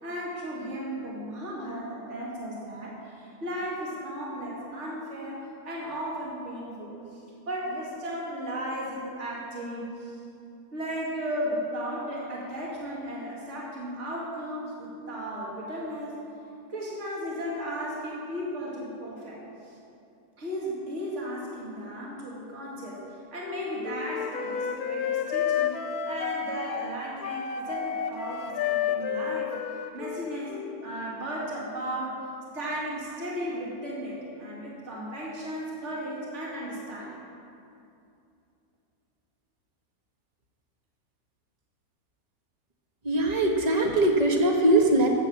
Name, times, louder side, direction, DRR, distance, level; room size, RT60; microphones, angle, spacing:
voice 1, 0.0-10.2 10.7-16.2 16.7-19.7 20.4-23.0 23.3-25.8 26.1-30.6 30.8-32.2 32.5-37.2, equal, 45° right, -5 dB, 2.8 m, -35 dB
Wind instrument woodwind instrument, 23.4-30.8, left 8 dB, 70° left, 1.2 m, -31 dB
voice 2, 43.0-45.1, right 1 dB, 25° right, 2 dB, 1.3 m, -21 dB
13.5 x 8.3 x 7.4 m, 2.6 s
omnidirectional pair, 1.7 m